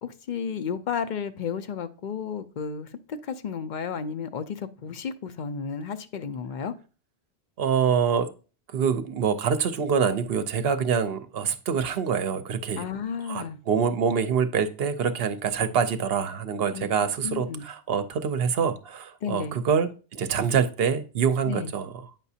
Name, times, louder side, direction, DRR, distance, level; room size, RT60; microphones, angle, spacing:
voice 1, 0.0-6.7 12.8-13.6 16.7-16.9 17.2-17.6 19.2-19.5 21.4-21.7, left 6 dB, 55° left, 0.6 m, -33 dB
voice 2, 7.6-8.3 8.7-12.9 13.3-21.9, right 7 dB, 65° right, 0.8 m, -25 dB
9.1 x 5.8 x 2.7 m
omnidirectional pair, 1.1 m